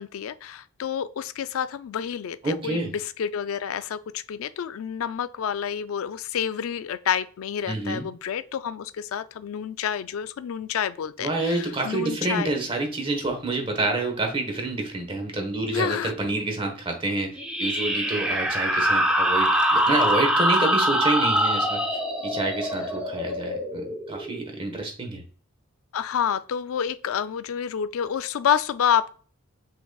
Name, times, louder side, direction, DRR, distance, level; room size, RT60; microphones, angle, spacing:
voice 1, 0.0-12.5 15.7-16.1 25.9-29.1, left 8 dB, 75° left, 0.4 m, -28 dB
voice 2, 2.4-3.0 7.7-8.1 11.2-21.8 22.2-25.2, right 2 dB, 25° right, 1.1 m, -28 dB
sound 1, 17.4-24.6, equal, 5° right, 0.6 m, -24 dB
5.8 x 3.8 x 2.3 m
head